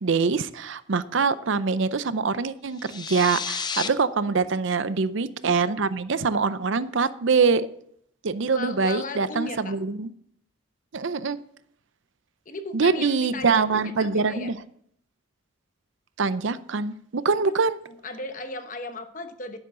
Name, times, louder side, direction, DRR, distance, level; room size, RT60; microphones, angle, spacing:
voice 1, 0.0-7.7 8.2-10.1 10.9-11.4 12.7-14.6 16.2-17.8, right 4 dB, 65° right, 0.6 m, -24 dB
sound 1, 2.7-3.9, left 6 dB, 20° left, 0.5 m, -31 dB
voice 2, 4.1-4.5 8.5-9.8 12.5-14.5 17.3-17.5 18.0-19.6, left 2 dB, 40° left, 1.0 m, -36 dB
11.5 x 10.5 x 3.8 m
head